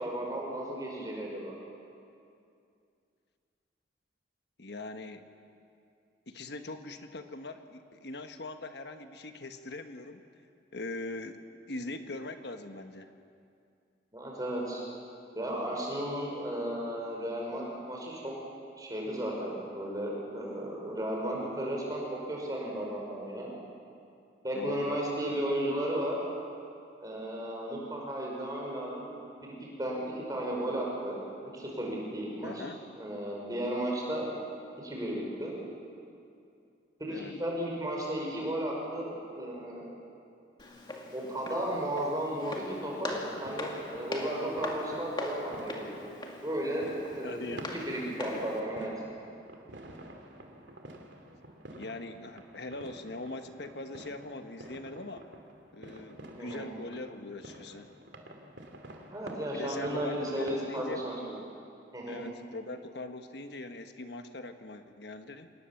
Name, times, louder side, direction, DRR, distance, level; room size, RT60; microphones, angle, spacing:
voice 1, 0.0-1.6 14.1-14.8 15.3-18.3 18.8-23.6 24.4-26.2 27.0-29.1 29.4-29.5 29.8-31.3 31.5-32.6 33.0-34.3 34.8-35.6 37.0-39.9 41.1-45.9 46.4-46.9 47.1-48.9 56.4-56.7 59.1-61.2 61.9-62.2, right 1 dB, 20° right, -2 dB, 5.2 m, -34 dB
voice 2, 4.6-5.3 6.3-10.2 10.7-13.1 24.5-25.0 32.4-32.8 37.1-37.3 47.2-47.7 51.7-55.3 55.7-57.9 59.5-61.0 62.1-65.5, left 2 dB, 65° left, 7 dB, 1.3 m, -41 dB
Walk footsteps, 40.6-48.6, left 1 dB, 25° left, 2.0 m, -41 dB
sound 1, 42.6-60.7, right 1 dB, 75° right, 2.6 m, -50 dB
26.5 x 19.5 x 7.2 m, 2.5 s
head